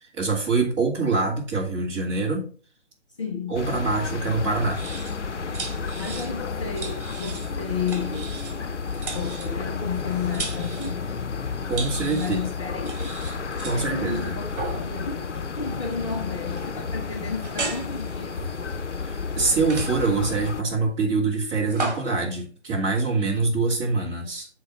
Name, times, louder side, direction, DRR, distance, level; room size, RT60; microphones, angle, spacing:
voice 1, 0.0-2.5 3.5-4.8 11.7-12.4 13.6-14.4 19.0-24.5, right 3 dB, 15° right, 2.2 m, -25 dB
voice 2, 3.2-3.6 6.0-8.4 8.9-10.9 12.1-13.2 13.7-18.3, left 6 dB, 25° left, 0.8 m, -32 dB
sound 1, 3.5-20.6, left 5 dB, 80° left, 0.7 m, -32 dB
sound 2, 4.6-5.2 5.5-6.4 6.7-7.5 7.9-8.6 8.9-11.0 11.7-12.4 12.8-13.8 14.5-15.0 15.9-16.1 16.4-16.7 17.4-19.0 19.6-20.2 21.2-22.2, right 3 dB, 45° right, 2.6 m, -36 dB
6.8 x 4.8 x 5.6 m
figure-of-eight pair, 145°, 35 cm